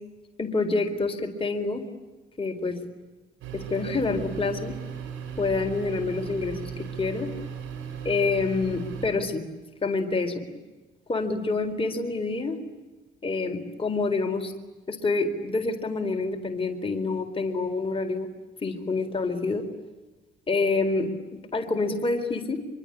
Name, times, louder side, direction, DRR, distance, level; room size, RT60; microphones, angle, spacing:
voice 1, 0.4-1.9 2.4-2.8 3.5-4.8 5.4-7.3 8.0-9.4 9.8-10.4 11.1-12.6 13.2-14.5 14.9-18.3 18.6-19.6 20.5-21.1 21.5-22.6, left 3 dB, 25° left, 4 dB, 4.1 m, -27 dB
sound 1, 3.4-9.1, right 7 dB, 85° right, 6.8 m, -37 dB
25.0 x 23.5 x 9.9 m, 1.2 s
cardioid pair, 90°, 20 cm